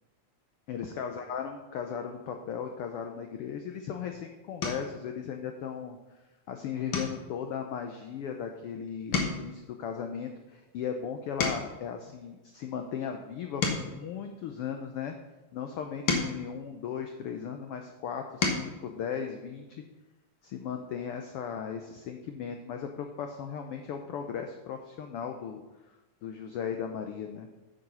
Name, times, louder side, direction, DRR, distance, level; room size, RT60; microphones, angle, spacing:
voice 1, 0.7-6.0 6.5-15.2 15.5-19.7 20.4-25.6 26.2-27.5, left 7 dB, 80° left, 5 dB, 1.3 m, -37 dB
sound 1, 3.7-4.0 4.6-5.0 5.5-5.9 6.2-6.4 6.9-8.7 9.0-11.9 12.5-15.0 15.7-17.5 18.0-18.8 20.2-20.3 20.6-20.7, left 4 dB, 50° left, 1.6 m, -35 dB
8.9 x 6.5 x 5.5 m, 1.0 s
omnidirectional pair, 3.4 m